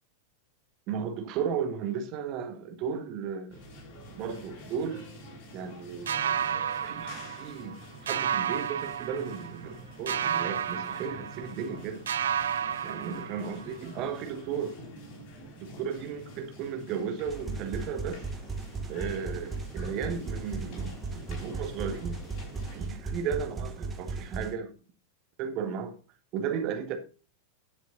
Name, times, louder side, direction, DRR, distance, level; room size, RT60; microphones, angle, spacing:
voice 1, 0.9-3.7 4.1-5.1 5.5-6.5 6.8-12.0 12.8-14.8 15.6-18.3 18.9-22.2 22.5-24.7 25.4-26.0 26.3-27.0, right 7 dB, 40° right, 1.8 m, -35 dB
sound 1, 3.5-22.9, equal, 40° left, 5.6 m, -47 dB
sound 2, 6.1-7.8 8.1-9.7 10.1-11.8 12.1-13.8, right 8 dB, 65° right, 0.4 m, -32 dB
sound 3, 17.3-24.5, right 3 dB, 15° right, 1.7 m, -36 dB
11.0 x 7.2 x 4.0 m
figure-of-eight pair, 90°, 0 cm